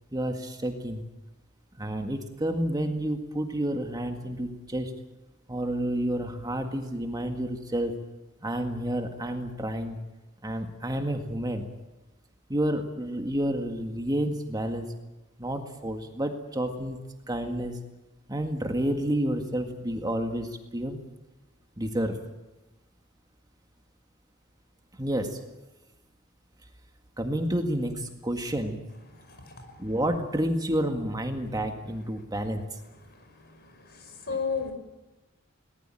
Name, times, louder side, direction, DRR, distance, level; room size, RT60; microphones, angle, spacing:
voice 1, 0.1-1.0 1.8-4.9 5.5-7.9 8.4-10.0 10.4-11.7 12.5-14.9 15.4-17.0 17.3-17.8 18.3-21.0 21.8-22.2 25.0-25.4 27.2-28.8 29.8-32.8 34.3-34.4, right 1 dB, 20° right, 5 dB, 1.9 m, -30 dB
voice 2, 34.3-34.7, left 5 dB, 50° left, 7 dB, 5.5 m, -30 dB
22.0 x 19.5 x 9.0 m, 1.1 s
head